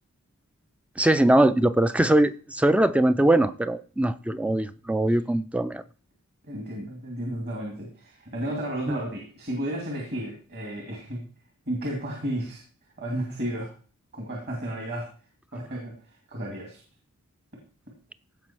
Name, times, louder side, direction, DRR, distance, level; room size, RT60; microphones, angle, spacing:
voice 1, 1.0-5.8 8.9-9.0, right 1 dB, 5° right, 0.4 m, -21 dB
voice 2, 6.4-11.2 11.7-12.6 13.0-13.7 14.1-15.1 15.5-15.9 16.3-16.8, right 1 dB, 50° right, 2.6 m, -33 dB
16.0 x 5.4 x 4.5 m
head